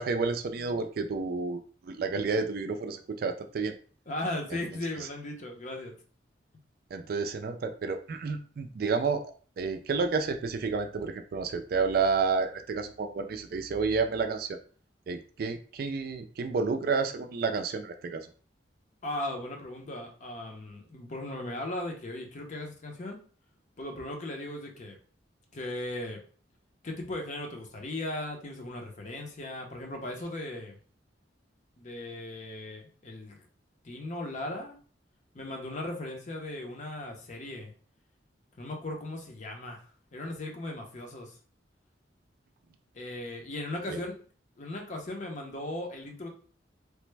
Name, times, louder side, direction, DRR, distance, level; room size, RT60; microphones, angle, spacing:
voice 1, 0.0-3.7 5.0-5.1 6.9-9.2 9.6-14.6 15.1-18.3 43.9-44.0, right 4 dB, 55° right, 7 dB, 0.3 m, -30 dB
voice 2, 4.1-5.9 19.0-23.2 23.8-25.0 25.5-26.2 26.8-30.8 31.8-33.4 33.8-34.8 35.3-37.7 38.6-39.8 40.1-41.3 42.9-44.2 44.6-46.3, left 1 dB, 40° left, 2 dB, 0.7 m, -37 dB
3.2 x 2.1 x 3.2 m, 0.42 s
head